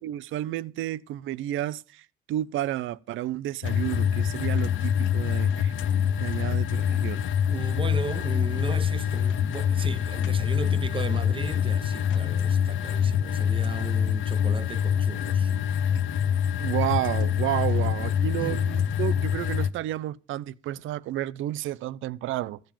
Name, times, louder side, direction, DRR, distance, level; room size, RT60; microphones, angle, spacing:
voice 1, 0.0-5.7 6.2-7.2 16.6-22.6, right 14 dB, 80° right, 0.5 m, -31 dB
sound 1, 3.6-19.7, left 8 dB, 75° left, 0.7 m, -25 dB
voice 2, 7.5-15.5 18.4-18.6, right 4 dB, 25° right, 0.8 m, -36 dB
14.0 x 5.2 x 7.4 m
cardioid pair, 90°, 20 cm